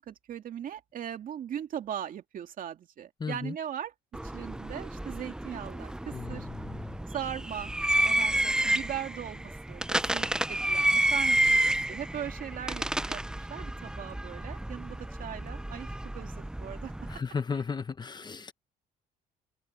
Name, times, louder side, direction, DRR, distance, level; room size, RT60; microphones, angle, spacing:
voice 1, 0.0-3.9 4.2-6.5 7.1-7.7 8.0-11.6 11.9-16.9, right 10 dB, 55° right, 2.4 m, -39 dB
voice 2, 3.2-3.5 6.1-7.0 17.1-18.5, left 5 dB, 25° left, 1.0 m, -35 dB
sound 1, 4.1-17.2, right 1 dB, 5° right, 0.5 m, -30 dB
cardioid pair, 110°, 17 cm